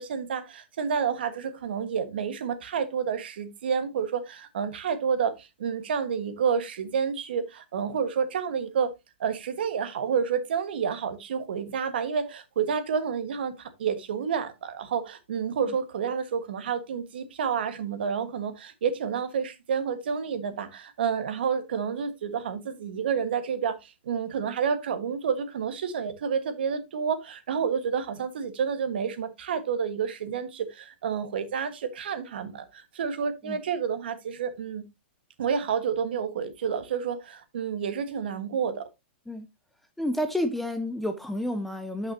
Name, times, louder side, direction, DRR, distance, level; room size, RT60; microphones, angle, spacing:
voice 1, 0.0-8.9 9.2-34.8 35.4-38.9, right 6 dB, 60° right, 1.4 m, -29 dB
voice 2, 40.0-42.1, left 1 dB, ahead, 0.4 m, -30 dB
12.0 x 5.9 x 2.7 m
hypercardioid pair, 175°, 6 cm